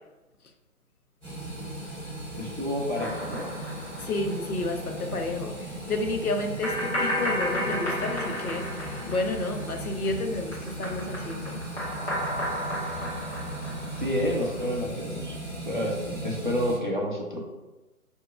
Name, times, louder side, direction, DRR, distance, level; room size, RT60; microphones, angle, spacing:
sound 1, 1.2-16.8, right 1 dB, 5° left, 1.3 m, -37 dB
voice 1, 2.3-3.5 14.0-15.4 15.6-17.4, equal, 35° right, -2 dB, 0.4 m, -29 dB
sound 2, 2.9-4.6 4.9-5.0 6.6-10.1 10.4-14.6, equal, 45° left, 1.3 m, -33 dB
voice 2, 4.0-11.6, left 2 dB, 75° left, 4 dB, 0.6 m, -31 dB
4.5 x 2.9 x 2.3 m, 1.1 s
figure-of-eight pair, 140°, 44 cm